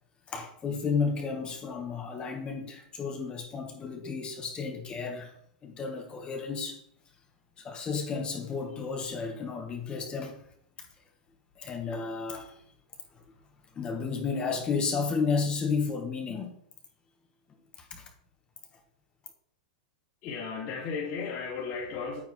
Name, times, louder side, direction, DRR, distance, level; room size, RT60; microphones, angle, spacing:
voice 1, 0.3-5.3 5.6-6.8 7.6-10.4 10.8-10.9 11.6-12.6 13.7-16.6 17.8-18.1, left 5 dB, 20° left, 4 dB, 1.3 m, -32 dB
voice 2, 20.2-22.2, left 5 dB, 40° left, -7 dB, 3.2 m, -35 dB
9.1 x 7.2 x 3.2 m, 0.66 s
supercardioid pair, 140°, 4 cm